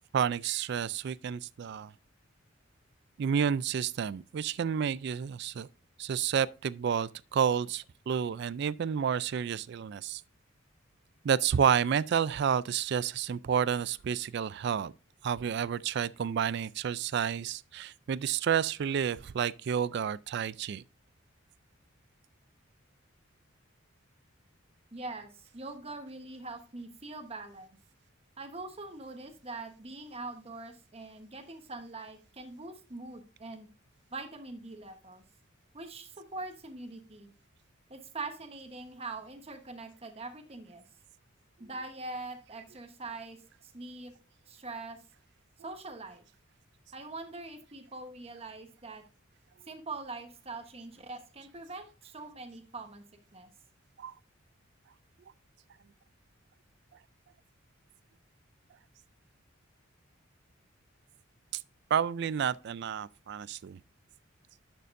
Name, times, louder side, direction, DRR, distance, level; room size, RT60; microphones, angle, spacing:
voice 1, 0.1-1.9 3.2-5.7 6.0-10.2 11.2-14.9 15.2-20.8 54.0-54.1 61.9-63.8, right 8 dB, 55° right, 0.3 m, -30 dB
voice 2, 24.9-27.8 28.4-33.7 34.1-35.2 35.7-37.3 37.9-40.8 41.6-44.1 44.5-45.0 45.6-46.2 46.9-49.0 49.7-53.0 53.3-53.5, right 3 dB, 30° right, 1.1 m, -43 dB
11.5 x 6.8 x 2.6 m
head